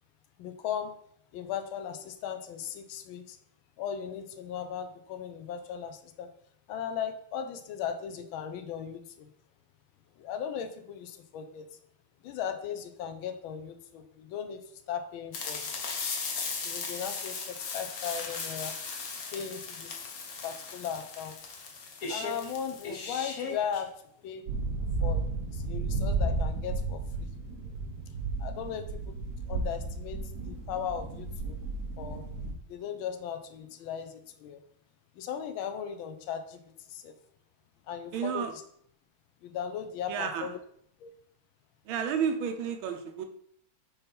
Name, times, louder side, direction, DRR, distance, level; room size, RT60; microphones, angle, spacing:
voice 1, 0.4-0.9 1.3-3.4 3.8-6.3 6.7-9.0 10.2-11.7 12.2-14.6 14.9-15.7 16.6-18.7 19.3-20.2 20.4-21.4 22.1-23.9 24.2-24.4 25.0-25.2 25.5-27.3 28.4-29.2 29.5-30.2 30.4-31.6 32.0-32.2 32.7-34.6 35.2-36.6 36.9-37.1 37.9-38.5 39.4-40.6 41.0-41.1, left 8 dB, 75° left, 7 dB, 1.5 m, -37 dB
sound 1, 15.3-23.8, left 4 dB, 50° left, 1.2 m, -37 dB
sound 2, 24.5-32.5, right 3 dB, 55° right, 1.5 m, -33 dB
voice 2, 38.1-38.5 40.1-40.5 41.8-43.3, right 7 dB, 75° right, 6 dB, 1.5 m, -31 dB
5.6 x 4.2 x 5.3 m, 0.67 s
omnidirectional pair, 2.3 m